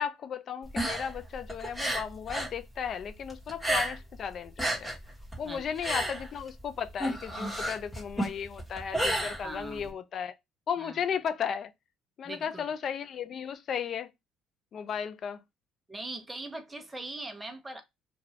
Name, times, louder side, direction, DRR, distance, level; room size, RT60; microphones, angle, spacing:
voice 1, 0.0-4.9 5.4-10.4 10.7-11.7 12.2-14.1 14.7-15.4, left 7 dB, 45° left, 0.4 m, -35 dB
sound 1, 0.6-2.6 2.8-4.2 4.4-9.9, right 1 dB, 5° left, 1.2 m, -32 dB
voice 2, 5.4-5.8 9.4-9.9 10.8-11.0 12.2-12.7 15.9-17.8, right 2 dB, 10° right, 0.7 m, -41 dB
2.6 x 2.5 x 3.0 m
cardioid pair, 130°, 0 cm